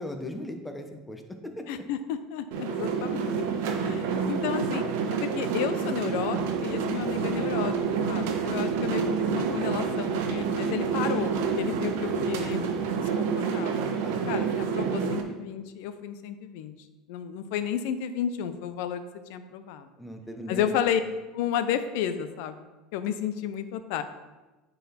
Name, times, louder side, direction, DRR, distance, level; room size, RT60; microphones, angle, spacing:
voice 1, 0.0-1.6 14.0-14.4 20.0-20.9, left 1 dB, 10° left, 5 dB, 0.9 m, -38 dB
voice 2, 1.7-3.4 3.8-4.8 5.2-7.7 8.1-12.7 13.2-13.7 14.0-16.7 17.1-19.0 19.3-19.9 20.5-21.0 21.3-22.6 22.9-24.0, left 9 dB, 75° left, 11 dB, 0.6 m, -32 dB
sound 1, 2.5-15.2, right 6 dB, 75° right, 0.9 m, -28 dB
sound 2, 6.0-12.9, left 1 dB, 40° left, 2.4 m, -44 dB
9.4 x 4.1 x 4.3 m, 1.2 s
supercardioid pair, 110°, 0 cm